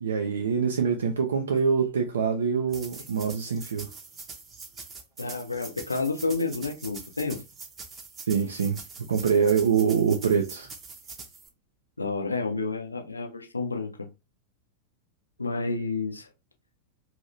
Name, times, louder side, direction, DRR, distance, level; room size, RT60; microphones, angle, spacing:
voice 1, 0.0-3.9 8.3-8.8 9.1-10.7, right 6 dB, 70° right, 0.4 m, -24 dB
sound 1, 2.7-11.5, right 4 dB, 25° right, 0.7 m, -44 dB
voice 2, 5.2-7.4 12.0-14.1 15.4-16.3, left 3 dB, 80° left, 0.6 m, -30 dB
2.8 x 2.6 x 3.1 m
figure-of-eight pair, 90°, 0 cm